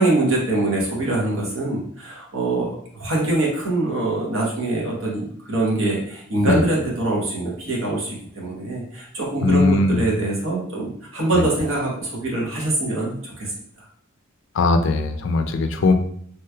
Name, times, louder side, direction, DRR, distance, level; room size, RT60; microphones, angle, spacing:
voice 1, 0.0-13.5, right 2 dB, 65° right, -3 dB, 1.1 m, -24 dB
voice 2, 9.4-10.0 11.3-11.4 14.5-15.9, left 3 dB, 60° left, 7 dB, 0.4 m, -19 dB
3.1 x 3.1 x 2.3 m, 0.63 s
head